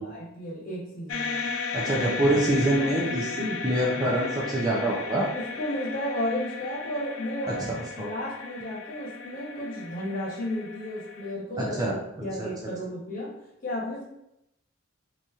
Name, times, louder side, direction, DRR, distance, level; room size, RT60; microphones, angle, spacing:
voice 1, 0.0-1.4 3.3-3.6 5.3-7.7 8.0-13.3 13.6-14.0, left 1 dB, 40° left, -4 dB, 1.1 m, -33 dB
sound 1, 1.1-11.3, left 5 dB, 80° left, 0.4 m, -35 dB
voice 2, 1.7-5.3 7.5-8.1 11.6-12.5, right 1 dB, 15° right, -4 dB, 0.5 m, -26 dB
3.0 x 2.7 x 3.5 m, 0.83 s
head